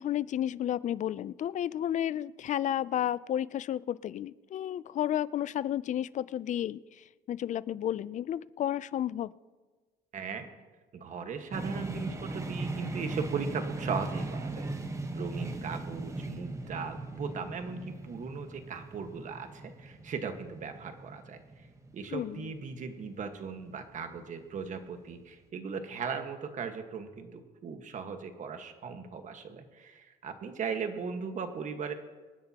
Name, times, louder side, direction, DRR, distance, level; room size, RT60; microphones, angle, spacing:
voice 1, 0.0-9.3 22.1-22.5, left 11 dB, 45° left, 19 dB, 0.4 m, -32 dB
voice 2, 10.1-10.5 10.9-14.7 15.1-21.4 21.9-31.9, right 5 dB, 45° right, 6 dB, 1.5 m, -38 dB
sound 1, 11.5-23.3, right 2 dB, 15° right, 1.2 m, -38 dB
26.0 x 10.5 x 2.9 m, 1.3 s
cardioid pair, 110°, 17 cm